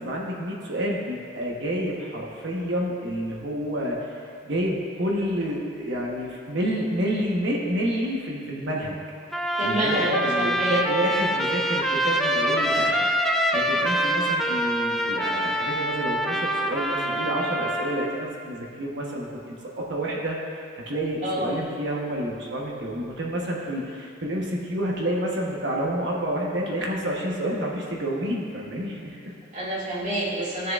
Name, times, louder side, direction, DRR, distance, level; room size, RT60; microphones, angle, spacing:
voice 1, 0.0-9.0 9.6-13.1 13.5-29.3, equal, 65° right, -3 dB, 1.2 m, -29 dB
Trumpet, 9.3-18.1, equal, ahead, 0.5 m, -25 dB
voice 2, 9.6-10.8 21.2-21.6 29.5-30.7, right 1 dB, 40° right, -7 dB, 2.2 m, -27 dB
16.5 x 6.6 x 2.5 m, 2.4 s
head